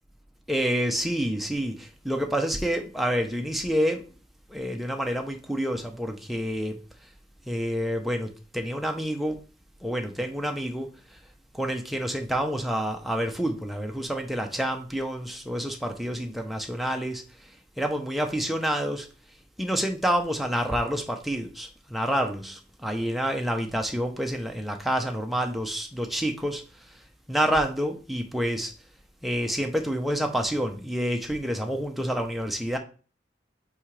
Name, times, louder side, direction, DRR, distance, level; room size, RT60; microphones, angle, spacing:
voice 1, 0.5-4.1 4.5-6.8 7.5-9.4 9.8-11.2 11.5-17.5 17.8-19.1 19.6-27.0 27.3-28.7 29.2-32.8, equal, ahead, 0.6 m, -28 dB
6.2 x 4.8 x 3.2 m
head